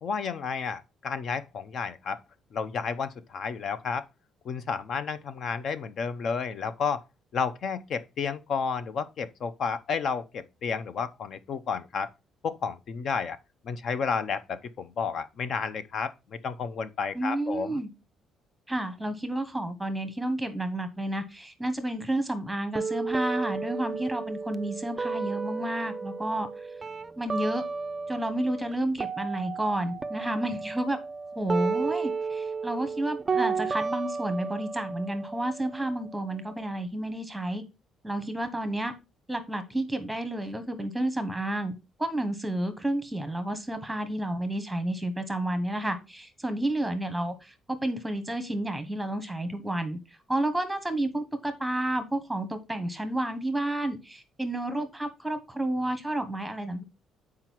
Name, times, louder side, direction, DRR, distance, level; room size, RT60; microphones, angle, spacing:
voice 1, 0.0-2.2 2.5-4.1 4.4-7.0 7.3-12.1 12.4-13.4 13.6-17.8, left 5 dB, 45° left, 0.7 m, -31 dB
voice 2, 17.1-17.9 18.7-26.5 27.2-27.6 28.1-31.0 31.3-37.6 38.0-38.9 39.3-50.0 50.3-56.8, right 1 dB, 5° right, 1.1 m, -31 dB
sound 1, 22.7-28.7 29.0-36.8, right 5 dB, 20° right, 0.4 m, -33 dB
7.6 x 4.8 x 4.5 m
cardioid pair, 160°, 0 cm